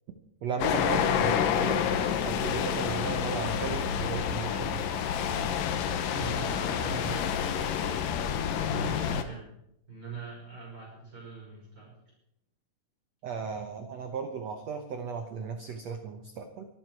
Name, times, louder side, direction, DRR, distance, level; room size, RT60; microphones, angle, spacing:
voice 1, 0.4-1.9 2.2-4.8 13.2-16.7, right 6 dB, 85° right, 6 dB, 1.4 m, -36 dB
sound 1, 0.6-9.2, left 8 dB, 70° left, 2.3 m, -28 dB
voice 2, 6.1-8.0 8.6-9.4 9.9-11.9, right 5 dB, 30° right, -4 dB, 6.2 m, -42 dB
24.0 x 9.8 x 4.7 m, 0.79 s
omnidirectional pair, 4.7 m